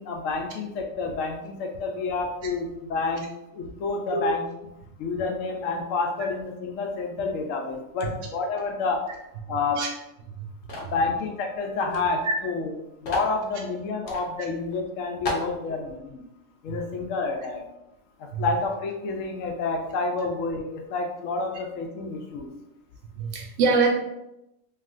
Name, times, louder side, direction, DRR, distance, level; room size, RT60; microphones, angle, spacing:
voice 1, 0.0-3.3 3.5-4.4 5.0-9.0 9.5-9.8 10.8-16.2 16.6-17.6 18.2-22.5, left 3 dB, 90° left, 2 dB, 1.0 m, -29 dB
sound 1, 10.7-11.0 11.9-12.0 12.3-12.4 13.0-13.4 14.1-14.3 14.7-14.8 15.3-15.5, left 2 dB, 65° left, 0.9 m, -31 dB
voice 2, 23.2-23.9, right 4 dB, 75° right, 0 dB, 1.1 m, -24 dB
3.2 x 2.7 x 2.5 m, 0.89 s
omnidirectional pair, 1.3 m